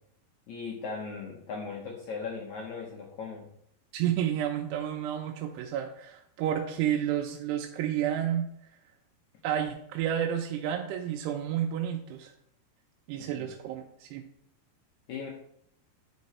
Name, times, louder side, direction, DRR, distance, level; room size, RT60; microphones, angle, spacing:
voice 1, 0.5-3.5 13.2-13.4 15.1-15.3, left 5 dB, 80° left, -1 dB, 1.7 m, -38 dB
voice 2, 3.9-8.5 9.4-12.3 13.1-14.2, right 10 dB, 90° right, 2 dB, 2.8 m, -30 dB
9.7 x 4.1 x 4.2 m, 0.70 s
omnidirectional pair, 4.7 m